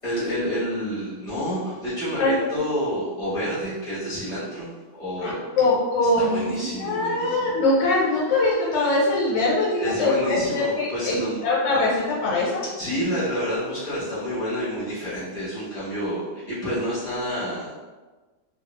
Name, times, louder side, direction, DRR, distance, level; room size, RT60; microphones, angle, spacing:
voice 1, 0.0-5.5 6.2-7.6 9.8-11.4 12.8-17.7, equal, 30° left, -11 dB, 0.8 m, -29 dB
voice 2, 5.2-10.1 10.5-12.6, left 2 dB, 85° left, -7 dB, 1.4 m, -22 dB
2.8 x 2.4 x 2.9 m, 1.3 s
omnidirectional pair, 1.9 m